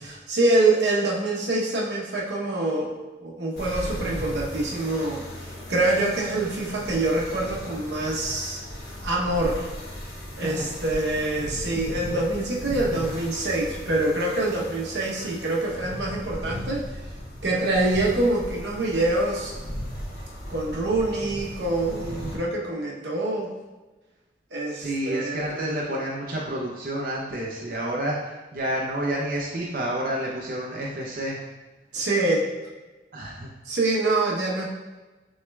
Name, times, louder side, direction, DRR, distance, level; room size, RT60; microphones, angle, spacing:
voice 1, 0.0-2.9 3.2-8.6 9.0-9.7 10.4-16.8 17.4-19.5 20.5-23.5 24.5-25.7 31.9-32.5 33.6-34.7, right 2 dB, 80° right, -3 dB, 0.9 m, -25 dB
sound 1, 3.6-22.4, equal, 65° left, 1.1 m, -37 dB
voice 2, 24.7-31.4 33.1-33.5, right 1 dB, 50° right, -4 dB, 0.6 m, -29 dB
6.3 x 3.2 x 2.3 m, 1.2 s
head